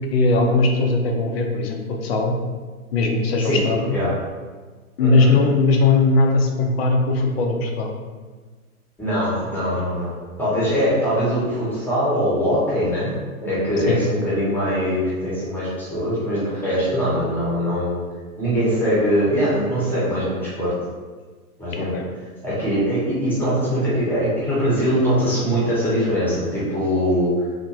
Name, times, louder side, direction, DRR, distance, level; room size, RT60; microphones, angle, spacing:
voice 1, 0.1-2.3 2.9-4.0 5.0-7.9 13.9-14.0 21.7-22.1, left 3 dB, 45° left, 2 dB, 0.5 m, -19 dB
voice 2, 5.0-5.4 9.0-10.1 10.4-13.1 13.4-18.0 18.4-20.7 21.6-21.9 22.4-27.3, equal, 5° left, -10 dB, 0.9 m, -22 dB
2.7 x 2.5 x 2.7 m, 1.4 s
figure-of-eight pair, 110°, 44 cm